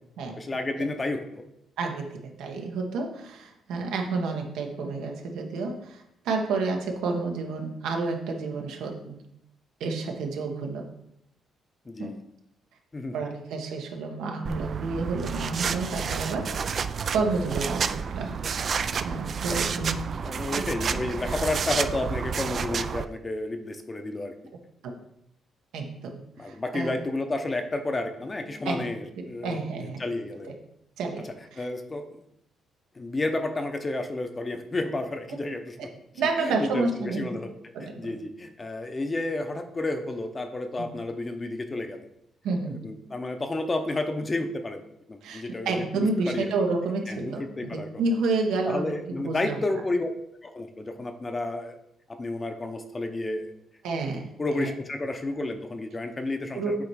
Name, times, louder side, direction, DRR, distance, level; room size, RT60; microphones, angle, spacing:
voice 1, 0.4-1.4 11.9-12.2 12.9-13.1 19.4-19.6 20.2-24.3 26.4-30.5 31.6-32.2 33.0-35.9 36.2-37.5 37.8-42.1 42.8-44.8 45.1-46.5 47.1-47.9 48.6-50.1 50.4-51.7 52.1-53.5 54.1-56.7, left 2 dB, 25° left, 7 dB, 0.7 m, -31 dB
voice 2, 1.8-9.2 9.8-10.9 12.0-12.1 13.1-16.8 17.1-18.4 19.0-20.0 20.5-20.6 24.8-25.0 25.7-26.9 28.6-28.8 29.4-30.0 31.0-31.7 36.1-37.3 37.7-38.1 40.8-40.9 42.4-42.8 45.2-49.6 53.8-54.3 54.6-54.7 56.5-56.7, right 3 dB, 90° right, 2 dB, 1.1 m, -30 dB
sound 1, 14.4-23.0, right 6 dB, 45° right, 0.3 m, -30 dB
8.2 x 3.1 x 4.7 m, 0.79 s
cardioid pair, 105°, 0 cm